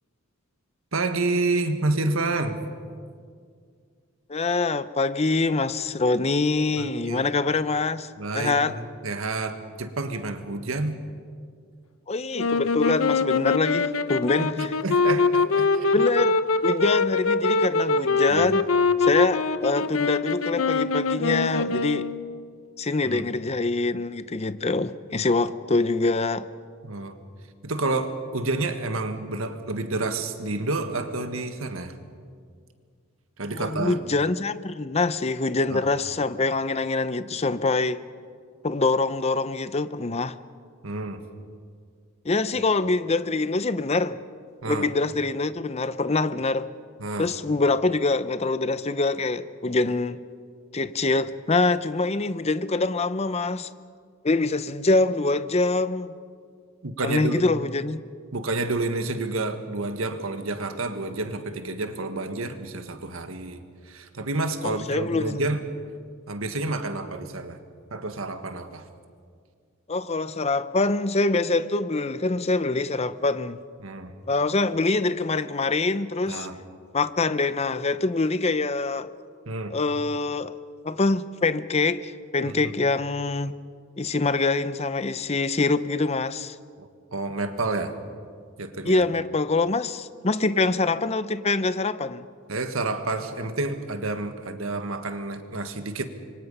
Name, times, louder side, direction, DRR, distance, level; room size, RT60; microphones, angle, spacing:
voice 1, 0.9-2.6 6.8-7.2 8.2-11.0 14.4-15.9 18.3-18.5 23.0-23.2 26.8-27.2 27.6-32.0 33.4-34.0 35.7-35.8 40.8-41.2 44.6-44.9 47.0-47.3 56.8-57.4 58.3-65.6 66.3-67.6 67.9-68.8 73.8-74.1 76.3-76.6 79.4-79.8 82.4-82.7 86.8-87.9 88.6-89.0 92.5-96.1, right 2 dB, 85° right, 1.6 m, -29 dB
voice 2, 4.3-8.1 8.3-8.7 12.1-14.7 15.9-16.4 16.6-18.6 19.0-22.1 22.8-26.5 33.5-38.0 38.6-40.4 42.2-44.2 44.6-46.7 47.2-50.2 50.7-53.7 54.2-56.2 57.0-58.0 64.6-65.4 69.9-73.6 74.3-76.5 76.9-79.1 79.7-80.5 80.8-83.5 84.0-86.6 88.8-92.2, left 3 dB, 30° left, 0.7 m, -24 dB
sound 1, 12.4-22.4, left 4 dB, 80° left, 0.8 m, -23 dB
26.0 x 23.5 x 5.5 m
head